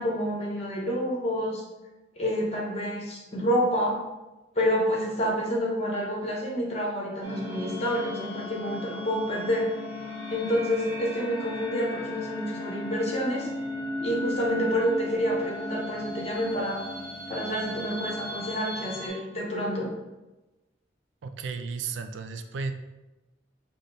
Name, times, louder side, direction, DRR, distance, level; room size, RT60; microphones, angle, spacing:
voice 1, 0.0-1.6 2.2-4.0 4.5-9.7 10.3-13.5 14.0-16.8 17.3-19.9, equal, 35° left, -2 dB, 1.0 m, -28 dB
sound 1, 7.2-19.1, left 1 dB, 15° right, 1.3 m, -36 dB
voice 2, 21.2-22.7, right 5 dB, 85° right, 7 dB, 0.4 m, -34 dB
5.0 x 2.1 x 4.1 m, 1.1 s
head